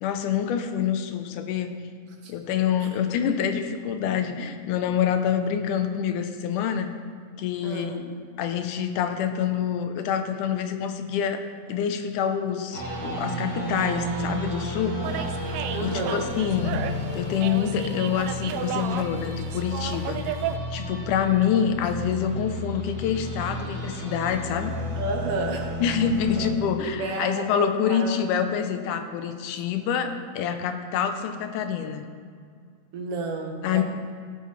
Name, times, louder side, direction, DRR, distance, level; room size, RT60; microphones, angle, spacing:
voice 1, 0.0-1.8 2.3-6.9 7.4-11.4 11.7-15.3 15.8-16.8 17.1-20.4 20.7-24.8 25.8-32.1 33.6-33.8, left 8 dB, 85° left, 7 dB, 2.3 m, -26 dB
voice 2, 7.6-8.0 15.7-16.3 25.0-25.7 26.4-26.5 26.8-28.1 29.5-29.6 32.9-33.8, right 2 dB, 65° right, 2 dB, 1.7 m, -31 dB
sound 1, 12.7-26.5, equal, 35° right, 2.2 m, -33 dB
sound 2, 15.0-20.6, right 10 dB, 90° right, 2.1 m, -34 dB
16.0 x 9.4 x 3.2 m, 2.1 s
omnidirectional pair, 3.5 m